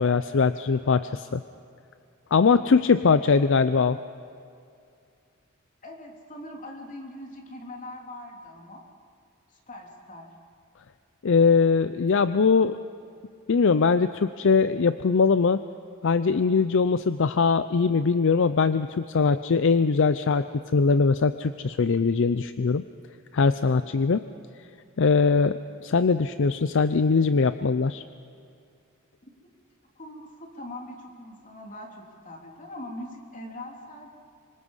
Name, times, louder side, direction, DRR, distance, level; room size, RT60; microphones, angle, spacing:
voice 1, 0.0-1.4 2.3-4.0 11.2-12.8 13.5-15.6 16.0-20.5 20.7-22.8 23.3-24.2 25.0-28.0, left 5 dB, 65° left, 12 dB, 0.5 m, -21 dB
voice 2, 5.8-8.8 9.5-10.3 29.2-29.3 29.9-34.1, left 1 dB, 40° left, 1 dB, 3.4 m, -41 dB
25.5 x 25.0 x 5.6 m, 2.5 s
head